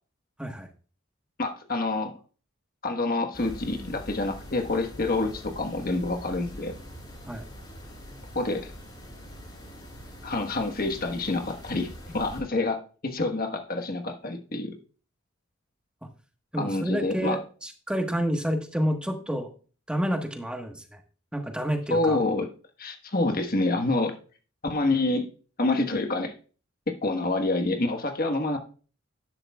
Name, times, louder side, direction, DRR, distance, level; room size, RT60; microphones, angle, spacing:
voice 1, 1.4-2.1 2.8-6.7 8.3-8.7 10.2-14.8 16.6-17.4 21.9-22.5 22.8-24.1 24.6-25.3 25.6-26.3 26.9-28.6, left 2 dB, 45° left, 5 dB, 1.4 m, -27 dB
sound 1, 3.3-12.4, equal, 25° left, 4.6 m, -44 dB
voice 2, 16.5-19.5 19.9-21.0 21.3-22.2, equal, 5° right, 4 dB, 1.3 m, -29 dB
12.0 x 10.5 x 2.3 m, 0.39 s
head